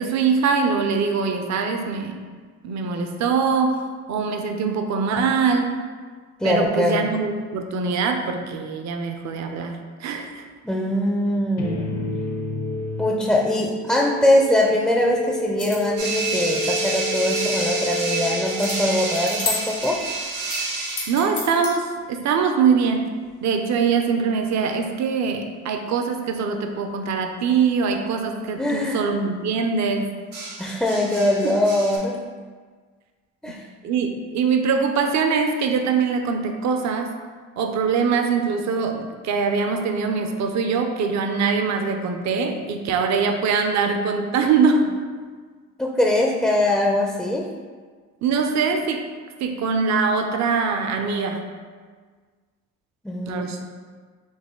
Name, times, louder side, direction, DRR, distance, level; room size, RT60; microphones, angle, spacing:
voice 1, 0.0-2.2 2.6-5.8 6.4-10.4 21.1-23.1 23.4-30.1 31.4-31.6 33.8-37.2 37.6-44.9 48.2-49.1 49.4-51.4 53.3-53.6, right 5 dB, 65° right, 5 dB, 0.5 m, -23 dB
voice 2, 6.4-7.1 10.6-12.1 13.0-20.0 28.6-29.0 30.6-32.2 33.4-33.6 45.8-47.5 53.0-53.5, left 1 dB, 5° left, -1 dB, 0.4 m, -22 dB
sound 1, 11.6-19.5, left 1 dB, 60° left, 0.7 m, -30 dB
sound 2, 15.4-16.0 18.6-18.8 19.1-20.0 20.4-21.7, left 4 dB, 75° left, 1.4 m, -31 dB
sound 3, 16.0-21.3 24.8-25.1 30.3-32.0, right 3 dB, 90° right, 1.0 m, -29 dB
4.1 x 3.0 x 3.7 m, 1.5 s
cardioid pair, 90°, 30 cm